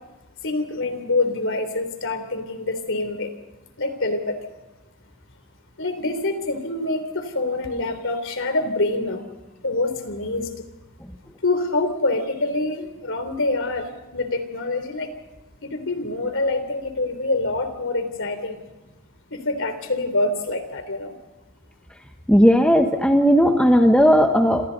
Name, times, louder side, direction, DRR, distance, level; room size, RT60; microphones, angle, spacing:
voice 1, 0.4-3.3 3.8-4.4 5.8-9.2 9.6-10.5 11.4-15.1 15.6-18.6 19.3-21.1, left 2 dB, 55° left, 8 dB, 3.6 m, -25 dB
voice 2, 22.3-24.7, equal, 5° left, 4 dB, 1.4 m, -16 dB
27.5 x 27.0 x 4.1 m, 1.1 s
head